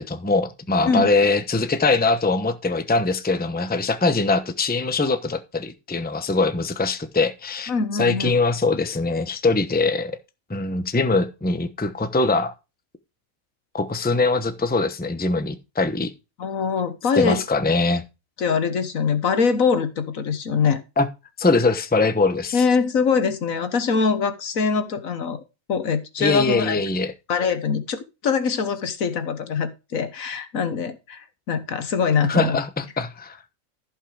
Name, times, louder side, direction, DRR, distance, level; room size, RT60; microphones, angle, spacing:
voice 1, 0.0-7.7 8.0-10.1 10.5-12.5 13.7-16.1 17.2-18.0 21.0-21.1 21.4-22.6 26.2-27.1 32.3-33.4, left 3 dB, 10° left, 0.8 m, -22 dB
voice 2, 7.7-8.3 16.4-17.4 18.4-20.8 22.5-25.4 25.7-26.8 27.3-32.6, left 5 dB, 75° left, 1.7 m, -23 dB
14.5 x 5.6 x 5.0 m
omnidirectional pair, 1.5 m